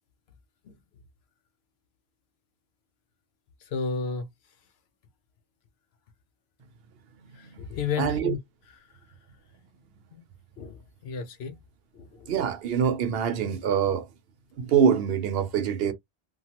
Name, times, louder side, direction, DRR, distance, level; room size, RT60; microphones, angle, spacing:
voice 1, 3.7-4.3 7.3-8.4 10.1-10.2 10.6-11.5 11.9-12.3, left 6 dB, 80° left, 0.9 m, -32 dB
voice 2, 8.0-8.4 12.3-14.1 14.6-15.9, right 7 dB, 70° right, 0.8 m, -24 dB
3.0 x 2.2 x 2.8 m
omnidirectional pair, 1.1 m